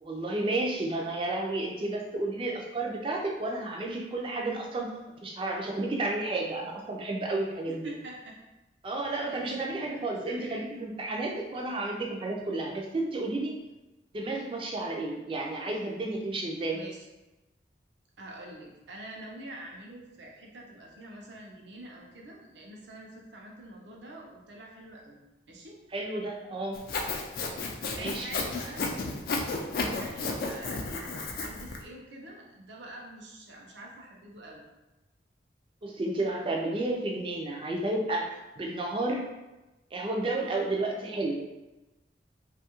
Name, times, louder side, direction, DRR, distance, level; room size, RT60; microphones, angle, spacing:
voice 1, 0.0-4.9 5.2-7.9 8.8-13.5 14.1-16.8 25.9-26.8 27.9-28.3 35.8-38.3 38.6-39.3 39.9-41.4, right 2 dB, 30° right, 0 dB, 0.4 m, -31 dB
voice 2, 7.7-8.4 9.3-10.7 16.7-17.0 18.2-25.2 25.5-25.8 27.9-29.1 29.7-34.6, right 1 dB, 80° right, -1 dB, 0.6 m, -46 dB
Sawing, 26.7-31.8, left 3 dB, 50° left, 0.3 m, -33 dB
2.6 x 2.3 x 2.9 m, 1.0 s
head